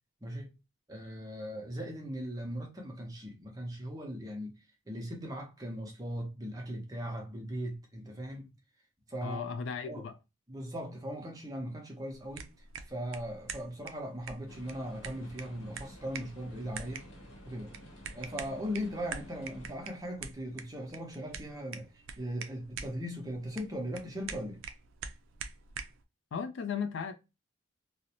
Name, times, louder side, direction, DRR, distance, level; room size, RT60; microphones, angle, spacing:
voice 1, 0.2-0.5 0.9-4.5 4.9-8.5 9.1-9.4 9.9-10.0 10.5-12.5 12.9-17.0 17.4-17.7 18.1-24.6, equal, 15° right, 0.6 m, -39 dB
voice 2, 9.2-10.2 26.3-27.1, left 6 dB, 65° left, 0.3 m, -35 dB
sound 1, 12.1-26.0, right 6 dB, 70° right, 0.3 m, -46 dB
sound 2, 14.5-19.8, equal, 85° left, 0.9 m, -51 dB
2.5 x 2.0 x 2.8 m
head